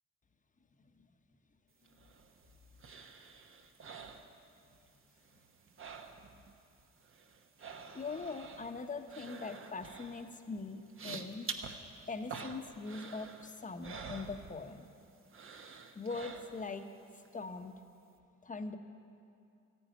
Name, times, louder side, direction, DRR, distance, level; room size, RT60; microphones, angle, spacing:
sound 1, 1.9-4.9 5.2-6.5 6.8-14.9 15.3-16.8 17.2-17.3, right 5 dB, 45° right, 1.2 m, -48 dB
voice 1, 7.9-11.5 12.1-14.8 15.9-16.8 17.3-17.7 18.4-18.8, left 4 dB, 25° left, 7 dB, 1.1 m, -41 dB
14.0 x 10.0 x 9.1 m, 2.5 s
cardioid pair, 90°, 30 cm